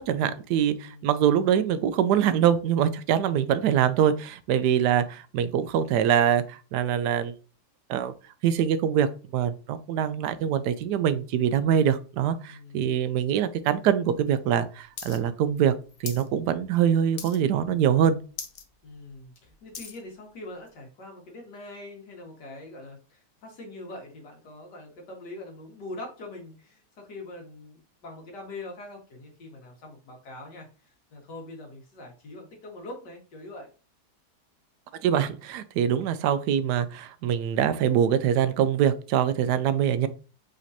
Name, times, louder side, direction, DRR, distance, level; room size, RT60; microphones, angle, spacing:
voice 1, 0.0-7.3 7.9-8.1 8.4-15.7 16.0-18.2 35.0-40.1, right 9 dB, 80° right, 13 dB, 1.1 m, -24 dB
voice 2, 0.8-1.3 12.5-12.9 18.8-33.7, left 2 dB, 85° left, 1 dB, 2.1 m, -43 dB
sound 1, 15.0-15.2 15.4-16.3 16.6-16.9 17.2-17.6 18.0-18.1 18.3-18.7 19.1-20.0 20.7-20.8, left 6 dB, 55° left, 0.6 m, -39 dB
5.1 x 3.8 x 2.7 m, 0.36 s
omnidirectional pair, 1.8 m